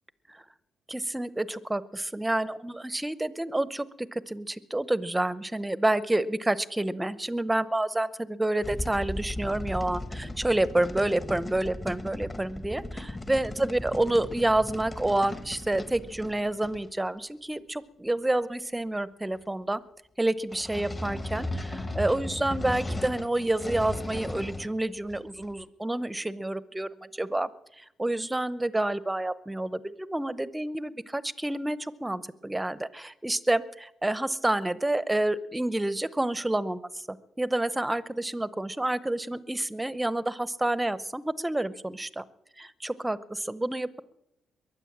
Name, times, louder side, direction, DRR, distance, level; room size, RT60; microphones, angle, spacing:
voice 1, 0.9-19.8 20.2-27.5 27.8-37.0 37.4-42.2 42.8-44.0, right 1 dB, 10° right, 15 dB, 0.8 m, -29 dB
sound 1, 8.6-16.9 20.5-24.7 25.1-25.6, left 1 dB, 20° left, 1.4 m, -36 dB
22.5 x 8.2 x 7.3 m, 0.84 s
cardioid pair, 90°, 0 cm